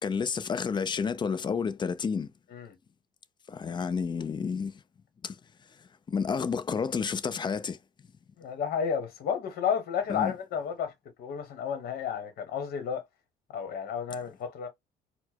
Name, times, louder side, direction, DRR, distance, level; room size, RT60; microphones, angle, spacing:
voice 1, 0.0-2.3 3.5-4.7 5.2-5.4 6.1-7.8 10.1-10.3, left 6 dB, 25° left, 0.5 m, -30 dB
voice 2, 8.4-10.9 11.2-13.0 13.5-14.7, left 7 dB, 65° left, 1.2 m, -32 dB
4.4 x 2.1 x 4.4 m
cardioid pair, 110°, 17 cm